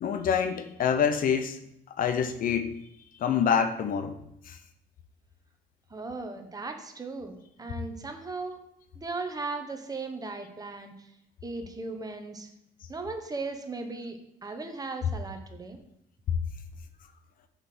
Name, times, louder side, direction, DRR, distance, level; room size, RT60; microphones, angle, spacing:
voice 1, 0.0-1.6 2.0-2.8 3.2-4.2 4.5-4.6, left 7 dB, 55° left, 9 dB, 0.8 m, -26 dB
voice 2, 5.9-8.6 8.9-11.1 11.4-12.5 12.9-15.8, right 3 dB, 20° right, 6 dB, 1.2 m, -37 dB
6.5 x 5.0 x 6.2 m, 0.76 s
cardioid pair, 110°, 17 cm